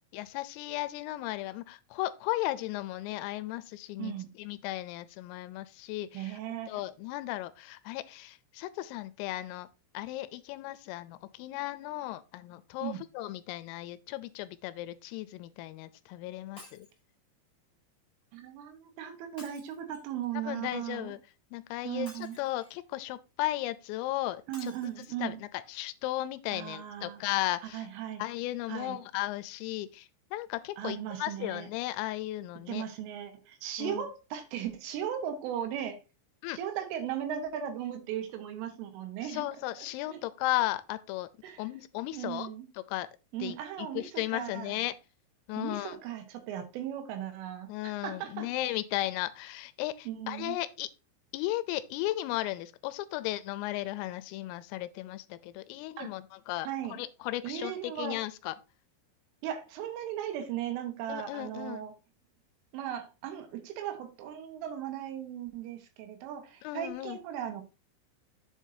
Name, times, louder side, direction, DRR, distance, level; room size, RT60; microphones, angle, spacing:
voice 1, 0.0-6.4 6.7-9.7 9.9-16.9 20.5-21.2 21.5-22.1 22.4-24.7 25.2-27.9 28.2-32.9 33.8-34.0 36.4-36.6 39.2-41.3 41.6-42.5 42.9-43.1 43.4-44.9 45.5-46.0 47.7-50.9 51.3-58.5 61.1-61.8 66.6-67.2, left 16 dB, 85° left, 3.1 m, -35 dB
voice 2, 4.0-4.3 6.1-6.8 12.8-13.0 18.3-21.2 21.9-22.4 24.5-25.4 26.5-27.2 27.7-28.2 28.7-29.0 30.8-31.7 32.7-36.0 36.5-39.5 39.8-40.2 41.4-41.6 42.1-42.7 43.3-44.8 45.6-48.5 50.1-50.6 56.0-56.1 56.7-57.0 57.4-58.2 59.4-61.9 62.7-67.6, right 10 dB, 75° right, 3.6 m, -37 dB
Shatter, 16.6-17.0 19.4-20.2 22.0-22.8 24.5-25.1 25.7-25.8 26.1-26.2, left 1 dB, 10° left, 3.1 m, -52 dB
9.0 x 7.6 x 2.7 m
omnidirectional pair, 6.0 m